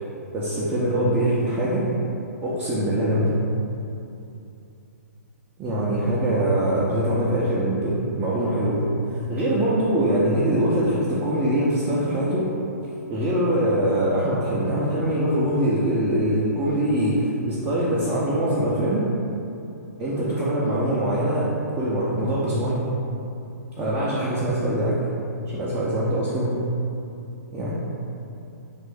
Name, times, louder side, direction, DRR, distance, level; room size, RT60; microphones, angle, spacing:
voice 1, 0.3-1.8 2.4-3.3 5.6-8.8 9.1-12.5 13.1-19.0 20.0-21.5 21.8-22.8 23.8-25.0 25.5-26.5 27.5-27.7, right 1 dB, 15° right, -8 dB, 0.4 m, -23 dB
3.2 x 2.5 x 3.5 m, 2.8 s
figure-of-eight pair, 120°, 9 cm